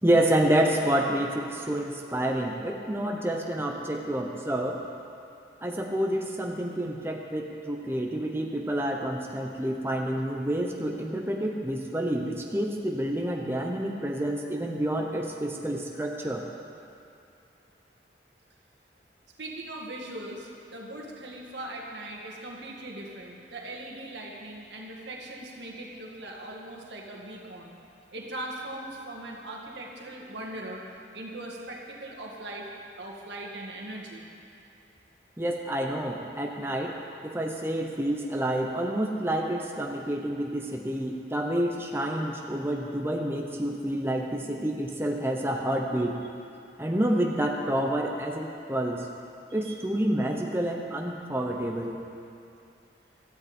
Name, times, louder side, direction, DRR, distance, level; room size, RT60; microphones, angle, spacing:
voice 1, 0.0-4.8 5.6-16.4 35.4-37.0 37.2-46.2 46.8-49.1 49.5-52.0, right 1 dB, 15° right, 0 dB, 0.9 m, -28 dB
voice 2, 19.4-27.8 28.1-30.8 31.1-32.7 33.0-34.3 49.6-49.8, right 1 dB, 75° right, -2 dB, 2.0 m, -40 dB
16.5 x 13.0 x 4.4 m, 2.6 s
head